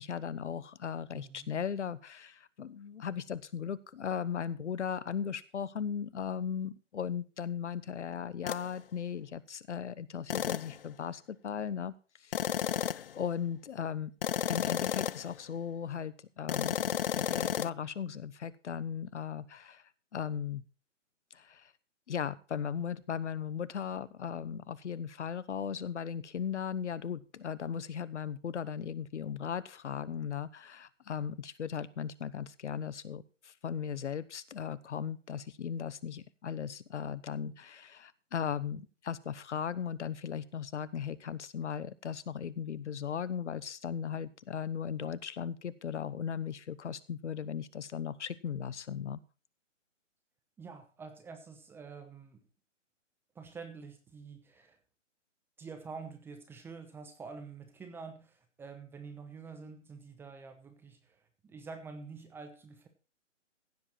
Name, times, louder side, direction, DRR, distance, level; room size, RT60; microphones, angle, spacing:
voice 1, 0.0-11.9 12.2-12.5 12.9-14.1 14.5-19.8 20.1-20.6 21.3-21.7 22.1-49.2, left 7 dB, 65° left, 19 dB, 1.1 m, -37 dB
voice 2, 1.1-1.5 50.6-52.4 53.3-54.8 55.6-62.9, right 5 dB, 5° right, 6 dB, 0.9 m, -47 dB
sound 1, 8.5-8.7 10.3-10.8 12.3-13.2 14.2-15.3 16.5-17.7, left 9 dB, 50° left, 0.4 m, -32 dB
15.5 x 7.4 x 4.4 m, 0.34 s
hypercardioid pair, 145°, 38 cm